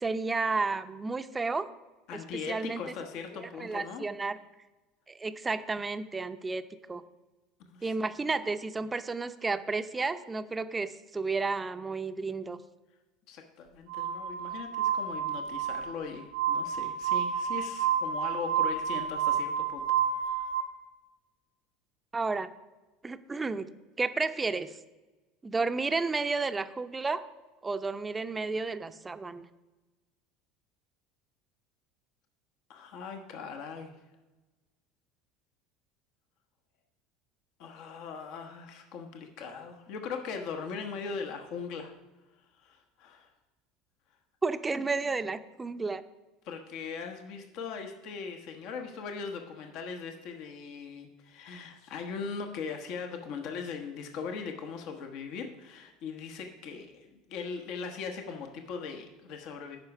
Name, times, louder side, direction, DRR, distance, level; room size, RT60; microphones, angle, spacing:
voice 1, 0.0-1.7 2.5-2.8 3.6-4.4 5.1-6.6 6.9-7.0 7.8-12.6 22.1-22.5 23.0-23.7 24.0-24.7 25.4-27.2 27.6-29.4 44.4-46.0, right 3 dB, 20° right, 10 dB, 0.6 m, -32 dB
voice 2, 2.1-4.1 7.6-7.9 13.3-20.6 32.7-33.9 37.6-41.9 42.6-43.3 46.4-59.8, left 5 dB, 60° left, 4 dB, 1.0 m, -40 dB
Glass, 13.9-20.6, right 8 dB, 85° right, 1.3 m, -30 dB
10.5 x 4.8 x 5.8 m, 1.1 s
hypercardioid pair, 80°, 0 cm